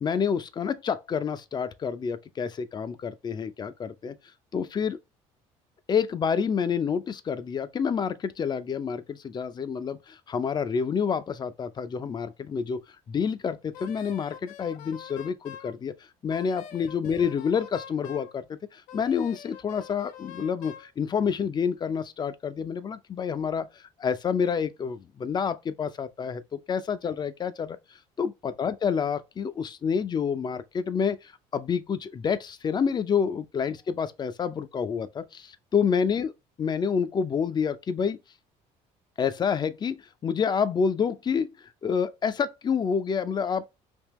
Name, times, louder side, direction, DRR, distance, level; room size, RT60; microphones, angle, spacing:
voice 1, 0.0-4.2 4.5-5.0 5.9-12.8 13.1-15.9 16.2-18.5 18.7-27.8 28.2-36.3 36.6-38.2 39.2-41.5 41.8-43.7, left 6 dB, 30° left, 0.5 m, -28 dB
Wind instrument woodwind instrument, 13.7-15.7 16.3-18.3 18.9-20.9, left 8 dB, 80° left, 0.6 m, -45 dB
3.5 x 2.8 x 3.0 m
cardioid pair, 105°, 14 cm